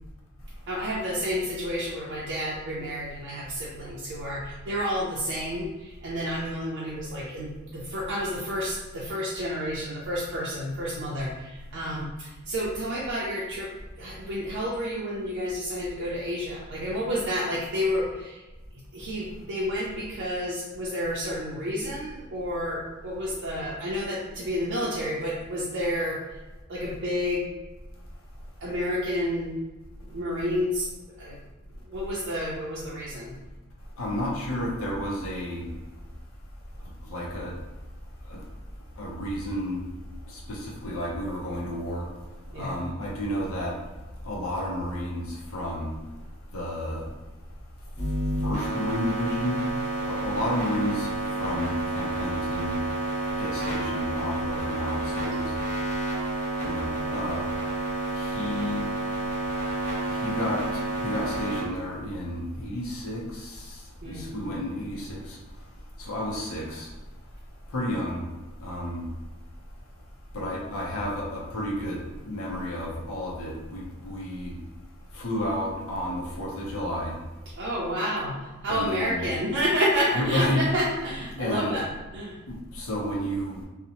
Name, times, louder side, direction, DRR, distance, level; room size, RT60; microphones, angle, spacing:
voice 1, 0.7-13.7 14.0-18.4 18.9-26.2 26.7-27.5 28.6-29.6 30.1-30.9 31.2-31.4 31.9-33.3 42.5-42.8 64.0-64.3 64.6-64.7 77.6-81.9 82.1-82.4, equal, 60° right, -5 dB, 0.4 m, -30 dB
voice 2, 34.0-35.7 37.0-37.5 38.3-38.4 39.0-39.8 40.3-42.1 42.5-43.8 44.2-45.9 46.5-47.1 48.4-49.7 50.0-51.1 51.4-52.8 53.4-55.6 56.6-57.5 58.1-58.8 60.1-60.6 61.0-65.4 66.0-66.9 67.7-68.3 68.6-69.0 70.3-74.5 75.1-77.2 78.7-79.3 80.1-80.6 81.4-81.7 82.5-83.6, left 1 dB, 70° left, -3 dB, 0.6 m, -31 dB
sound 1, 48.0-61.6, right 1 dB, 30° left, 0.7 m, -30 dB
2.7 x 2.0 x 2.8 m, 1.2 s
head